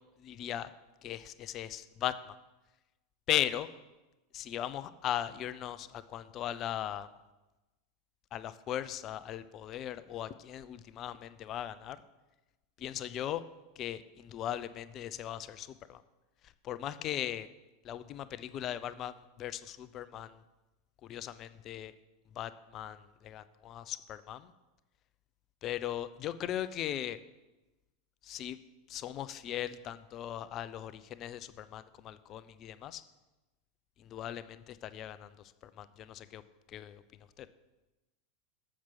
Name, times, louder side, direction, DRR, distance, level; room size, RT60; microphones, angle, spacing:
voice 1, 0.2-0.7 1.0-2.4 3.3-3.7 4.3-7.1 8.3-12.0 12.8-13.4 13.8-16.0 16.6-17.5 17.8-19.1 19.4-20.3 21.0-21.9 22.4-23.0 23.2-24.5 25.6-27.2 28.2-28.6 28.9-33.0 34.0-35.3 35.6-36.4 36.7-37.0 37.4-37.5, left 11 dB, 35° left, 14 dB, 0.5 m, -38 dB
7.3 x 5.9 x 7.3 m, 1.1 s
figure-of-eight pair, 85°, 0 cm